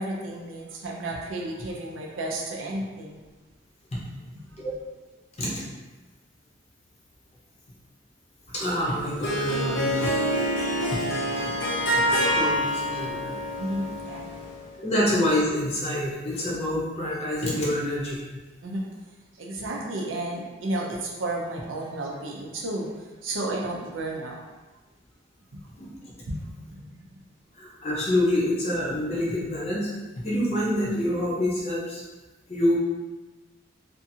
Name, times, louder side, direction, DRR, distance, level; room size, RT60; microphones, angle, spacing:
voice 1, 0.0-3.2 4.3-4.6 13.6-14.3 18.6-18.9 19.4-22.9 23.2-24.4 25.5-25.6 26.3-26.9, right 1 dB, 85° right, -2 dB, 0.5 m, -32 dB
voice 2, 8.5-10.3 10.9-11.0 12.2-13.4 14.8-18.2 25.8-25.9 27.6-29.9 30.2-32.0 32.5-32.8, left 1 dB, 30° left, -6 dB, 0.6 m, -26 dB
Harp, 8.9-14.7, equal, 75° left, 0.6 m, -27 dB
2.6 x 2.4 x 2.7 m, 1.2 s
head